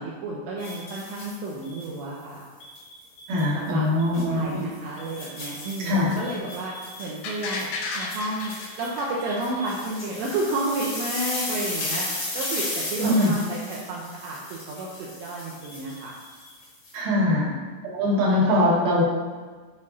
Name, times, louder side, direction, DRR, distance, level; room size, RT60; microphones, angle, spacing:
voice 1, 0.0-2.5 3.5-3.8 4.1-6.7 7.0-16.1 17.2-17.6 18.3-18.8, right 2 dB, 80° right, -4 dB, 3.0 m, -31 dB
sound 1, 0.6-1.9 2.6-3.5 4.0-4.2 4.7-16.9, left 2 dB, 55° left, 1.2 m, -35 dB
voice 2, 3.3-4.6 5.9-6.1 13.0-13.3 16.9-17.5 17.9-19.0, left 1 dB, 60° right, -5 dB, 3.5 m, -22 dB
sound 2, 7.2-10.2 10.5-10.6, left 4 dB, 85° left, 3.6 m, -34 dB
12.5 x 4.3 x 4.2 m, 1.4 s
omnidirectional pair, 5.2 m